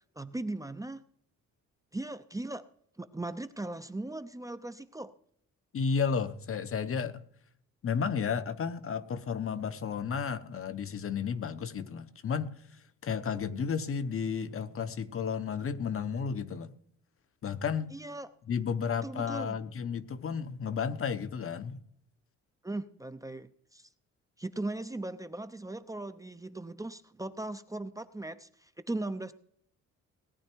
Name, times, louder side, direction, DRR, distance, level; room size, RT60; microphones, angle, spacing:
voice 1, 0.2-1.0 1.9-2.6 3.0-5.1 17.9-18.3 19.0-19.6 22.6-23.9 24.4-29.3, right 2 dB, 10° right, 0.7 m, -38 dB
voice 2, 5.7-7.2 7.8-16.7 17.4-17.9 18.5-21.8, left 6 dB, 45° left, 1.1 m, -33 dB
18.0 x 10.0 x 4.6 m
cardioid pair, 90°, 30 cm